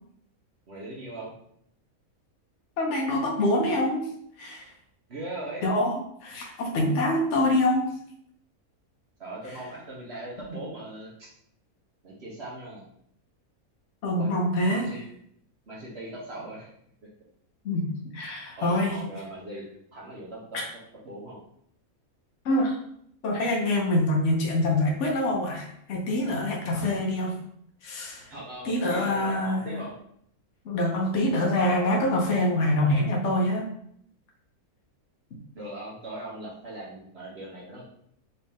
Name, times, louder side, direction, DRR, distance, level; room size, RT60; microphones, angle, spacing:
voice 1, 0.7-1.3 5.1-5.6 9.2-11.3 12.0-12.8 14.2-14.3 14.7-15.0 15.7-16.7 18.6-19.6 19.9-20.6 21.0-21.4 26.7-27.0 28.3-29.9 35.5-37.8, right 1 dB, 50° right, -5 dB, 1.1 m, -39 dB
voice 2, 2.8-4.1 4.4-4.7 5.6-7.9 14.0-15.0 17.6-17.9 18.1-19.0 20.5-20.6 22.4-22.8 23.2-27.4 27.8-28.3 28.6-29.8 30.6-33.7, left 1 dB, 60° left, 0 dB, 1.0 m, -25 dB
4.2 x 2.8 x 3.5 m, 0.69 s
omnidirectional pair, 1.5 m